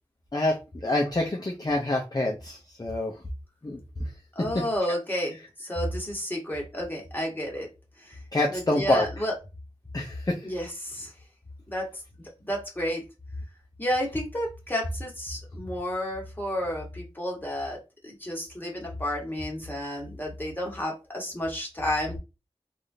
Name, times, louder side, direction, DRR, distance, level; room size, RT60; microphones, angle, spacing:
voice 1, 0.8-3.1 3.6-3.8 8.3-9.1 9.9-10.4, left 1 dB, 35° left, 0 dB, 0.6 m, -26 dB
voice 2, 4.3-7.7 8.0-8.2 8.5-9.3 10.4-11.1 11.7-11.9 12.2-13.0 13.8-17.8 18.0-22.2, equal, 20° left, -2 dB, 1.5 m, -31 dB
3.4 x 2.5 x 2.7 m, 0.28 s
wide cardioid pair, 50°, 11 cm